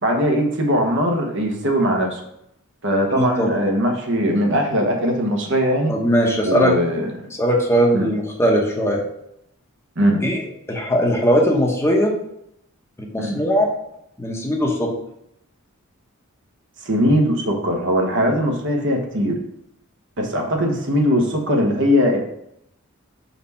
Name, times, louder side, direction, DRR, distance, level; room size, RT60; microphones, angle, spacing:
voice 1, 0.0-2.2 2.8-5.9 6.4-7.1 7.9-8.1 10.0-10.2 13.2-13.4 16.8-19.4 20.2-22.2, equal, 55° right, 2 dB, 1.1 m, -20 dB
voice 2, 3.2-3.5 5.9-6.7 7.4-9.0 10.2-12.2 13.1-13.7 14.2-14.9, equal, 10° left, 0 dB, 0.9 m, -19 dB
4.3 x 4.2 x 5.6 m, 0.77 s
head